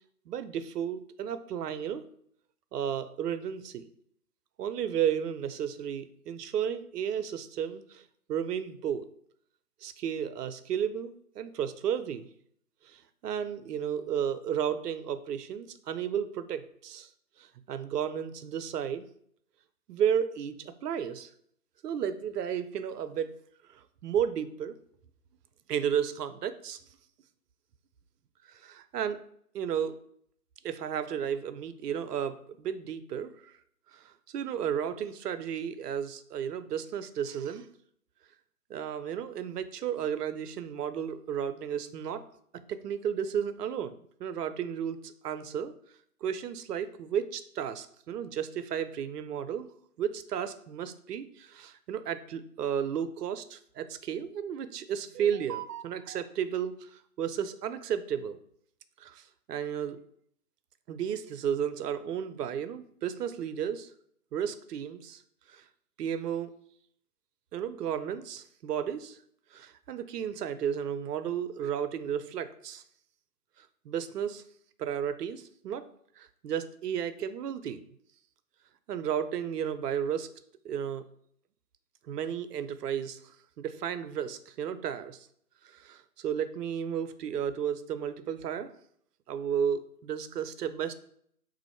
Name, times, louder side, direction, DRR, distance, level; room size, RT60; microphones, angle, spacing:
voice 1, 0.3-2.0 2.7-3.8 4.6-8.0 8.3-9.0 9.8-12.3 12.8-17.1 17.4-19.0 19.9-21.3 21.8-23.4 23.7-24.7 25.7-26.8 28.6-29.2 29.5-30.0 30.6-33.5 33.9-37.7 38.7-42.2 42.5-45.7 46.2-49.7 50.0-58.4 59.0-59.2 59.5-60.0 60.9-63.9 64.3-65.2 65.5-65.6 66.0-66.5 67.5-69.2 69.5-72.8 73.9-74.4 74.8-75.8 76.2-77.8 78.9-80.3 80.6-81.0 82.1-83.2 83.6-85.3 85.6-88.7 89.3-90.9, right 8 dB, 80° right, 11 dB, 0.5 m, -33 dB
3.1 x 2.5 x 4.2 m, 0.66 s
hypercardioid pair, 155°, 46 cm